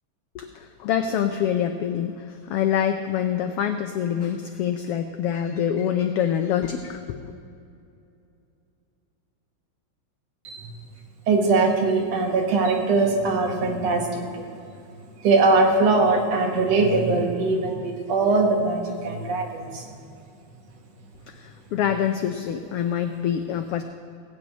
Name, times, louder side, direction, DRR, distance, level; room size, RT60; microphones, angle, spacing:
voice 1, 0.3-7.3 21.3-23.8, left 9 dB, 85° left, 7 dB, 1.3 m, -26 dB
voice 2, 11.3-14.5 15.2-19.9, right 3 dB, 65° right, 2 dB, 2.6 m, -21 dB
17.0 x 6.2 x 9.0 m, 2.6 s
omnidirectional pair, 3.3 m